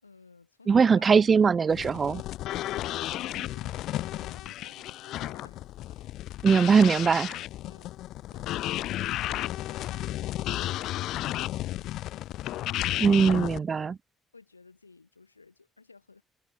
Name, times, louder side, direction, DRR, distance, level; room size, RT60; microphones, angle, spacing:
voice 1, 0.0-1.3 3.0-6.8 7.6-7.9 14.3-16.2, left 4 dB, 85° left, 4.2 m, -56 dB
voice 2, 0.7-2.2 6.4-7.4 13.0-14.0, right 6 dB, 35° right, 0.6 m, -21 dB
sound 1, 1.7-13.6, left 14 dB, 60° left, 0.4 m, -33 dB
figure-of-eight pair, 50°, 0 cm